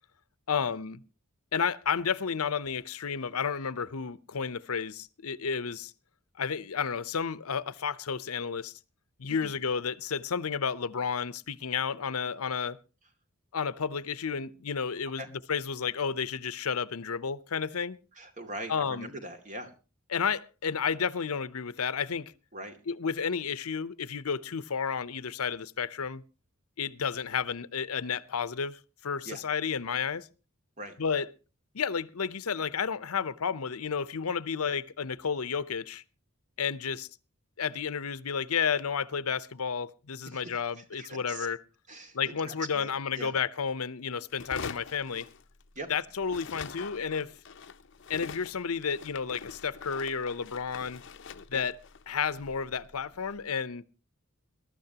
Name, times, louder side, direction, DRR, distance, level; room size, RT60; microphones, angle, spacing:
voice 1, 0.5-1.0 1.5-5.9 6.4-8.7 9.2-12.8 13.5-15.2 15.5-18.0 18.7-19.1 20.1-22.3 22.9-26.2 26.8-30.3 31.0-31.3 31.7-36.0 36.6-37.1 37.6-41.6 42.1-45.3 45.9-47.3 48.1-51.0 51.5-51.7 52.1-53.8, left 6 dB, 90° left, 0.8 m, -31 dB
voice 2, 18.1-19.7 22.5-22.8 29.2-29.4 30.8-31.0 40.3-40.4 40.8-41.5 41.9-43.4 45.8-45.9 51.5-51.6, right 1 dB, 35° right, 2.4 m, -42 dB
sound 1, 44.3-45.9 46.2-53.4, left 5 dB, 55° left, 0.7 m, -45 dB
21.5 x 12.5 x 2.9 m
head